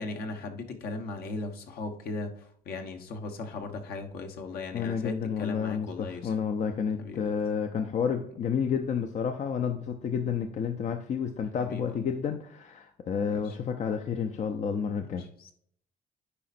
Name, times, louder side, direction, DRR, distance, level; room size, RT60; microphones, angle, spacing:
voice 1, 0.0-6.3 7.0-7.3 11.6-12.1 13.3-13.6 15.0-15.5, left 3 dB, 65° left, 4 dB, 1.2 m, -38 dB
voice 2, 4.7-15.2, left 7 dB, 45° left, 6 dB, 0.6 m, -30 dB
9.8 x 4.2 x 2.6 m, 0.64 s
cardioid pair, 110°, 17 cm